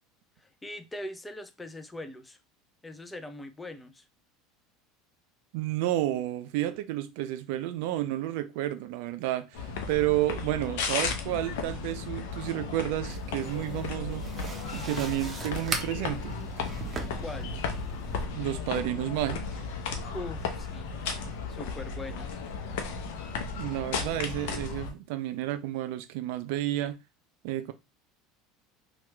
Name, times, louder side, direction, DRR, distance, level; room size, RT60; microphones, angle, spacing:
voice 1, 0.4-2.4 2.8-4.1 17.2-17.5 20.1-20.9 21.5-22.3, left 1 dB, 15° left, 0.5 m, -41 dB
voice 2, 5.5-14.3 14.7-16.4 18.3-19.6 23.6-27.0 27.4-27.7, right 14 dB, 70° right, 0.4 m, -31 dB
sound 1, 9.5-24.9, left 5 dB, 70° left, 0.7 m, -35 dB
sound 2, 13.1-18.2, right 3 dB, 30° right, 0.7 m, -40 dB
2.9 x 2.4 x 3.2 m
hypercardioid pair, 85°, 0 cm